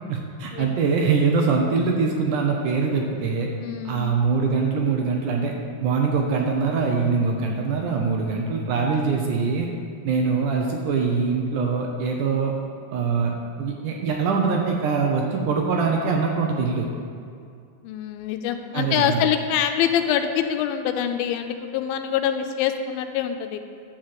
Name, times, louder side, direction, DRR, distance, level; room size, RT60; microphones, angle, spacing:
voice 1, 0.1-3.5 3.9-5.5 5.8-9.7 10.0-12.5 12.9-16.9 18.7-19.2, right 5 dB, 75° right, 1 dB, 2.0 m, -23 dB
voice 2, 3.6-4.1 17.8-23.6, left 9 dB, 85° left, 7 dB, 2.4 m, -25 dB
11.5 x 4.4 x 7.7 m, 2.3 s
omnidirectional pair, 4.2 m